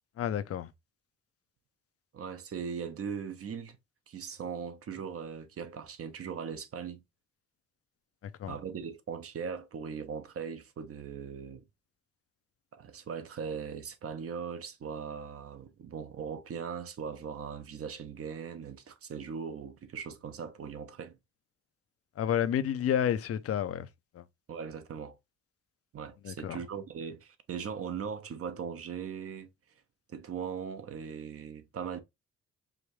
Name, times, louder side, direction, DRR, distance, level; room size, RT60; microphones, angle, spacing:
voice 1, 0.2-0.7 8.2-8.6 22.2-23.9 24.1-24.3 26.2-26.6, left 9 dB, 50° left, 0.6 m, -30 dB
voice 2, 2.1-3.8 4.1-7.0 8.5-11.6 12.7-21.2 24.5-25.1 25.9-29.5 30.1-32.0, right 6 dB, 50° right, 0.9 m, -39 dB
5.0 x 2.6 x 3.1 m
cardioid pair, 90°, 30 cm